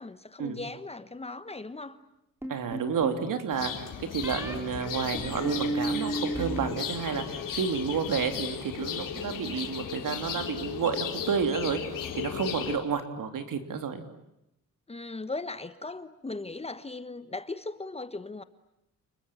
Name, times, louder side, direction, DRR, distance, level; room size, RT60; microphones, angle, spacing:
voice 1, 0.0-2.0 14.9-18.4, left 3 dB, 20° left, 1.1 m, -38 dB
sound 1, 2.4-3.2 4.2-4.6 5.1-6.7 7.0-7.5, right 2 dB, 5° right, 3.9 m, -33 dB
voice 2, 2.5-3.9 4.1-11.8 12.2-14.0, right 6 dB, 70° right, 3.3 m, -30 dB
sound 2, 3.5-12.8, left 8 dB, 65° left, 3.6 m, -35 dB
29.5 x 21.5 x 9.0 m
cardioid pair, 135°, 34 cm